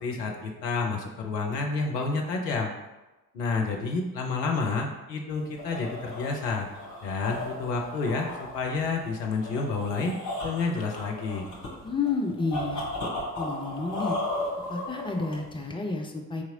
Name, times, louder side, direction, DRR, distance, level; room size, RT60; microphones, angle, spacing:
voice 1, 0.0-2.7 3.3-6.7 7.0-10.1 10.4-11.4, left 4 dB, 80° left, 1 dB, 0.6 m, -29 dB
sound 1, 5.3-15.7, left 1 dB, 40° left, 1.1 m, -36 dB
voice 2, 11.8-12.8 13.4-14.2 14.7-16.4, left 4 dB, 10° left, 2 dB, 0.4 m, -30 dB
4.5 x 2.8 x 2.7 m, 1.1 s
figure-of-eight pair, 40°, 48 cm